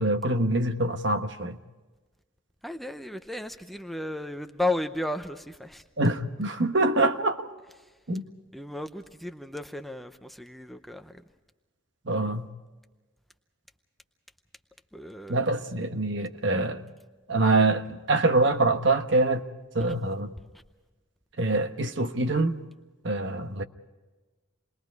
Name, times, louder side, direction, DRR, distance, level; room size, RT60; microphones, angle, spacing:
voice 1, 0.0-1.6 6.0-7.5 8.1-8.2 12.1-12.4 15.3-16.8 17.3-19.4 19.7-20.3 21.4-22.6 23.0-23.6, right 2 dB, 60° right, 1.2 m, -25 dB
voice 2, 2.6-5.8 8.5-11.2 14.9-15.4, left 1 dB, ahead, 0.7 m, -34 dB
28.5 x 21.5 x 4.7 m
head